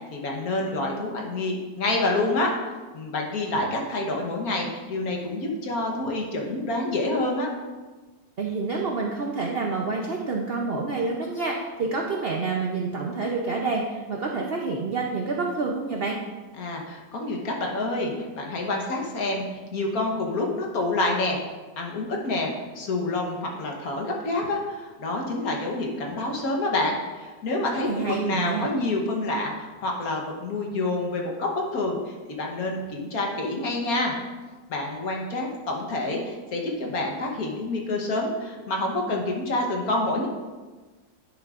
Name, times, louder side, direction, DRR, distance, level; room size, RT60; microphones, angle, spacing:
voice 1, 0.1-2.5 2.9-7.5 16.6-21.4 21.8-34.1 34.7-40.3, left 2 dB, 60° left, 0 dB, 1.5 m, -28 dB
voice 2, 8.4-16.2 27.8-28.7, right 4 dB, 65° right, 0 dB, 0.5 m, -28 dB
10.0 x 7.2 x 2.5 m, 1.3 s
omnidirectional pair, 1.9 m